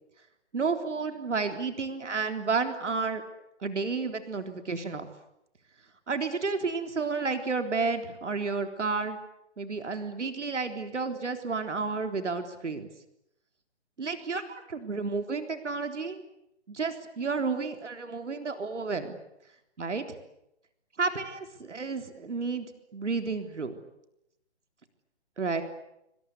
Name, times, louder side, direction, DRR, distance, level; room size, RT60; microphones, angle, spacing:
voice 1, 0.5-3.2 3.6-5.1 6.1-9.2 9.6-12.9 14.0-16.2 16.7-19.2 19.8-20.2 21.0-22.7 22.9-23.8 25.4-25.6, right 4 dB, 85° right, 7 dB, 3.7 m, -31 dB
26.5 x 25.0 x 8.3 m, 0.82 s
hypercardioid pair, 165°, 35 cm